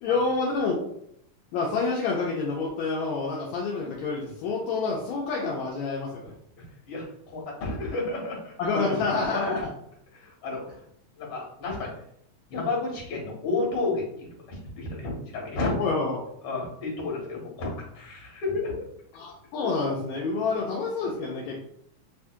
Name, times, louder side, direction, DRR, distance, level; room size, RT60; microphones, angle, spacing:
voice 1, 0.0-0.8 1.5-6.3 8.6-9.7 15.8-16.2 19.1-21.6, left 4 dB, 80° left, -3 dB, 1.9 m, -28 dB
voice 2, 6.6-8.5 8.9-9.0 9.3-9.5 10.1-10.7 11.2-11.9 12.5-15.7 16.4-18.8 19.6-19.7, left 3 dB, 55° left, -3 dB, 2.3 m, -31 dB
6.6 x 2.7 x 2.3 m, 0.71 s
omnidirectional pair, 3.4 m